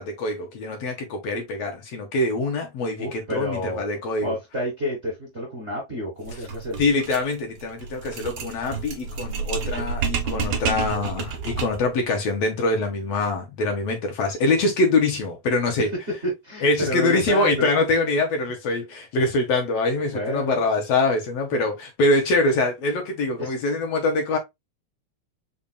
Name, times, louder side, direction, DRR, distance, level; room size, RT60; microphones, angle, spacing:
voice 1, 0.0-4.4 6.8-15.9 16.6-24.4, left 2 dB, 65° left, 1.9 m, -24 dB
voice 2, 3.0-3.9 4.2-6.8 16.4-17.7 20.1-20.6 23.4-23.5, left 1 dB, 40° right, 1.0 m, -30 dB
sound 1, 6.2-11.9, right 5 dB, 60° right, 1.4 m, -29 dB
5.3 x 2.4 x 2.2 m
omnidirectional pair, 3.3 m